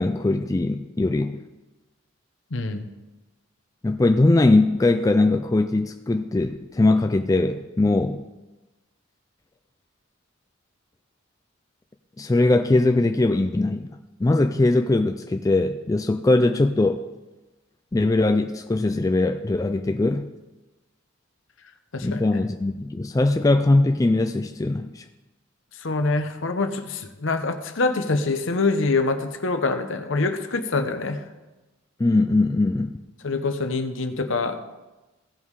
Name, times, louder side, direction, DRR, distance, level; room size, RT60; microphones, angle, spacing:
voice 1, 0.0-1.4 3.8-8.2 12.2-13.9 14.2-17.0 17.9-20.3 22.0-25.0 32.0-33.0, left 2 dB, 15° left, 6 dB, 0.3 m, -21 dB
voice 2, 2.5-2.8 21.9-22.2 25.8-31.2 33.2-34.6, left 3 dB, 65° left, 7 dB, 0.9 m, -25 dB
16.0 x 5.5 x 4.8 m, 1.1 s
head